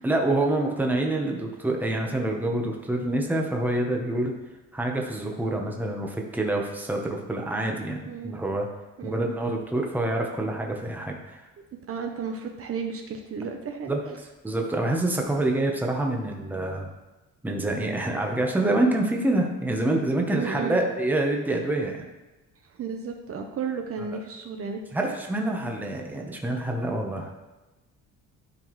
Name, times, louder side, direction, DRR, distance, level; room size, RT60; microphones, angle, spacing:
voice 1, 0.0-4.3 4.7-8.0 8.2-8.7 9.0-11.4 13.9-14.0 14.4-16.9 17.4-22.1 24.9-27.3, right 1 dB, 5° right, 1 dB, 0.9 m, -26 dB
voice 2, 9.0-9.3 11.9-13.9 20.3-20.8 22.8-24.8, right 6 dB, 45° right, 4 dB, 0.8 m, -33 dB
12.0 x 4.6 x 3.1 m, 1.1 s
cardioid pair, 140°, 32 cm